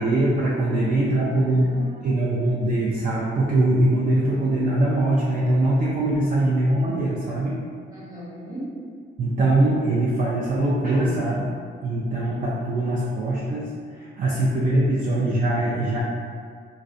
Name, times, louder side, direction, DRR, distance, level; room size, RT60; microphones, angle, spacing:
voice 1, 0.0-1.7 2.0-7.6 9.2-11.5 11.8-16.0, right 1 dB, 45° right, -6 dB, 0.4 m, -22 dB
voice 2, 0.8-2.5 7.9-8.7, right 2 dB, 15° right, -8 dB, 0.9 m, -39 dB
2.4 x 2.0 x 2.5 m, 2.1 s
cardioid pair, 90°, 20 cm